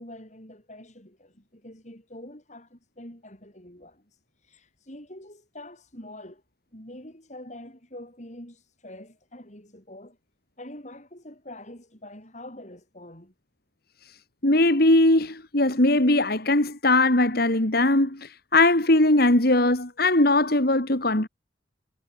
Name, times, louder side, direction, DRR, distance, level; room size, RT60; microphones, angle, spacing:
voice 1, 0.0-6.4 6.7-10.2 10.6-13.3, left 1 dB, 40° left, 7.9 m, -45 dB
voice 2, 14.4-21.3, left 2 dB, 55° left, 2.8 m, -20 dB
head